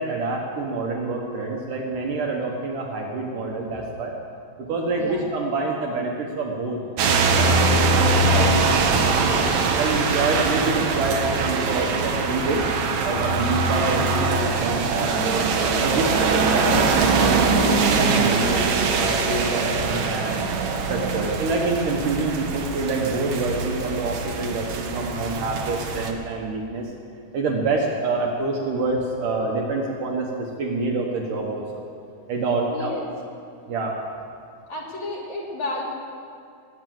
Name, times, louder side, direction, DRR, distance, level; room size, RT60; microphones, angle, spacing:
voice 1, 0.0-4.2 4.6-9.4 9.8-12.7 13.0-15.4 15.8-20.4 20.9-26.9 27.3-31.9 32.3-32.9 33.7-34.0, right 3 dB, 65° right, 0 dB, 2.3 m, -27 dB
sound 1, 7.0-26.1, right 4 dB, 90° right, 1.5 m, -22 dB
voice 2, 32.7-33.0 34.7-35.8, left 2 dB, 50° left, -3 dB, 2.6 m, -32 dB
19.0 x 9.0 x 7.7 m, 2.3 s
omnidirectional pair, 5.0 m